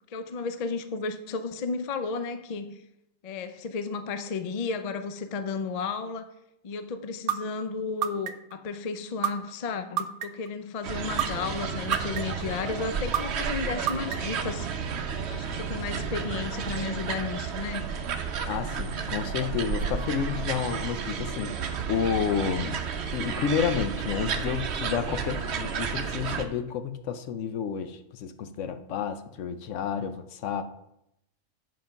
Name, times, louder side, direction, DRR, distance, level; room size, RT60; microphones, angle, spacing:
voice 1, 0.1-2.7 3.2-6.3 6.6-14.7 15.3-17.9, left 4 dB, 80° left, 9 dB, 0.3 m, -33 dB
sound 1, 7.3-7.4 8.0-8.5 9.2-9.3 10.0-10.5 11.2-11.3 11.9-12.4 13.1-13.2 13.9-14.4, right 10 dB, 85° right, 1.1 m, -26 dB
sound 2, 10.8-26.4, right 6 dB, 55° right, 0.9 m, -32 dB
voice 2, 18.5-22.8 23.1-30.6, left 7 dB, 65° left, 10 dB, 0.9 m, -30 dB
7.8 x 5.3 x 5.7 m, 0.82 s
omnidirectional pair, 1.5 m